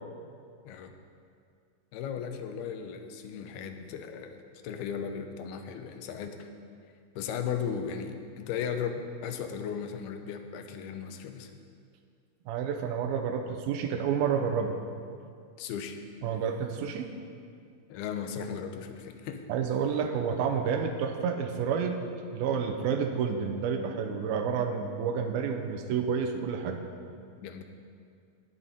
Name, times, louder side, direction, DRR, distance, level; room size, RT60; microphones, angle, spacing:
voice 1, 1.9-4.4 4.6-6.5 7.2-11.5 15.6-16.0 17.9-19.4 27.4-27.6, left 7 dB, 90° left, 6 dB, 2.8 m, -36 dB
voice 2, 12.5-14.7 16.2-17.1 19.5-26.8, right 6 dB, 80° right, 5 dB, 2.6 m, -30 dB
20.0 x 8.0 x 4.2 m, 2.3 s
omnidirectional pair, 4.3 m